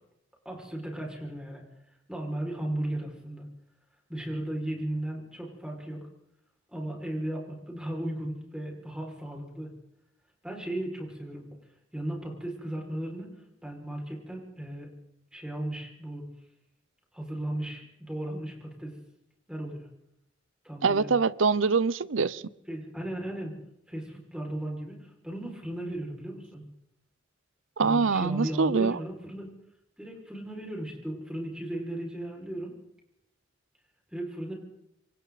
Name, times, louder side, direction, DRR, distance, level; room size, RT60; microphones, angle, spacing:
voice 1, 0.4-1.6 2.1-3.4 4.1-6.0 6.7-9.7 10.4-11.5 11.9-14.9 15.3-16.3 17.1-18.9 19.5-19.9 20.6-21.1 22.7-23.6 23.9-26.7 27.8-29.6 30.0-32.7 34.1-34.5, right 1 dB, 5° right, 5.9 m, -36 dB
voice 2, 20.8-22.4 27.8-29.0, right 4 dB, 80° right, 0.7 m, -24 dB
27.0 x 26.5 x 4.2 m
head